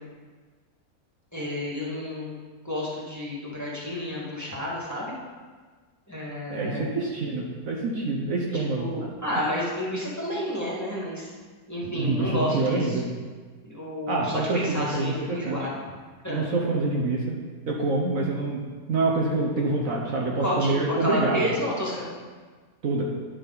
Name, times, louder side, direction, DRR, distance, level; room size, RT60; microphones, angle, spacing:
voice 1, 1.3-2.3 2.6-5.1 6.1-6.9 8.5-11.3 11.7-13.0 13.6-15.8 16.2-16.4 20.4-22.1, left 1 dB, 10° left, -6 dB, 1.8 m, -30 dB
voice 2, 6.5-8.9 11.9-13.1 14.1-15.6 16.3-17.4 17.7-18.6 18.9-21.5 22.8-23.0, right 3 dB, 60° right, -2 dB, 1.3 m, -26 dB
10.0 x 6.5 x 4.0 m, 1.5 s
omnidirectional pair, 1.7 m